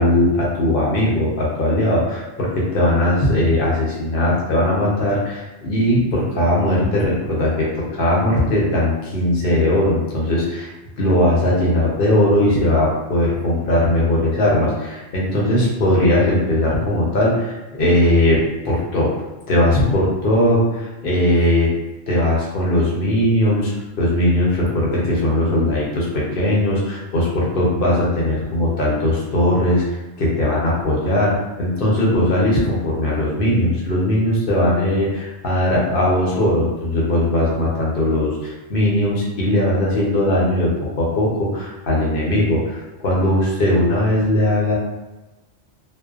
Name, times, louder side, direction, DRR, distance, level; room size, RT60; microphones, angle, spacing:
voice 1, 0.0-10.7 11.0-19.1 19.5-21.7 22.1-23.7 24.0-44.7, left 1 dB, 60° left, -4 dB, 0.8 m, -19 dB
2.5 x 2.1 x 2.3 m, 1.1 s
omnidirectional pair, 1.2 m